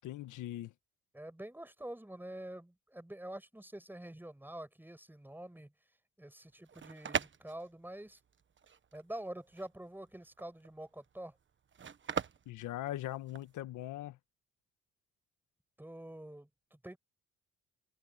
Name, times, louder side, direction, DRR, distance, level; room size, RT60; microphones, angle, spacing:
voice 1, 0.0-0.7 12.5-14.2, left 14 dB, 85° left, 1.4 m, -40 dB
voice 2, 1.1-5.7 6.2-8.2 8.9-11.3 15.8-17.0, right 1 dB, 5° right, 7.6 m, -46 dB
sound 1, 6.5-13.6, right 7 dB, 40° right, 1.3 m, -41 dB
open air
cardioid pair, 90°, 30 cm